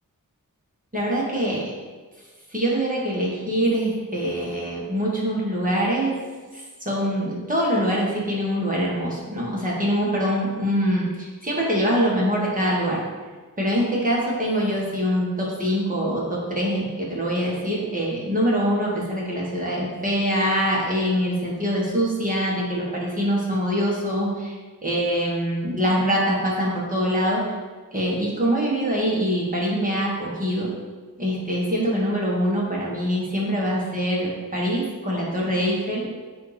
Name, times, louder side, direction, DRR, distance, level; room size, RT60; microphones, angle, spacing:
voice 1, 0.9-1.7 2.5-6.2 6.5-13.0 13.6-24.5 24.8-27.4 27.9-30.7 31.2-36.0, equal, 25° right, -4 dB, 1.6 m, -24 dB
7.8 x 2.8 x 5.1 m, 1.4 s
wide cardioid pair, 100°, 33 cm